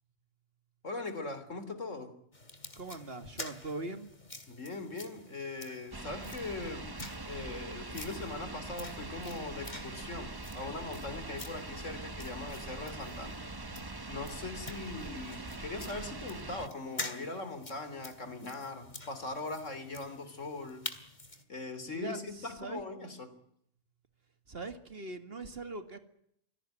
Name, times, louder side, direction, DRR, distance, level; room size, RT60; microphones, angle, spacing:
voice 1, 0.8-2.1 4.5-7.0 7.3-13.4 14.1-20.8 21.5-23.3, left 3 dB, 75° left, 11 dB, 3.6 m, -40 dB
sound 1, 2.3-21.4, left 2 dB, 35° left, 2.8 m, -48 dB
voice 2, 2.7-4.1 21.8-22.8 24.5-26.0, right 2 dB, 50° right, 9 dB, 2.3 m, -41 dB
sound 2, 5.9-16.7, right 2 dB, 20° right, 1.0 m, -43 dB
26.0 x 17.5 x 9.1 m, 0.72 s
omnidirectional pair, 1.3 m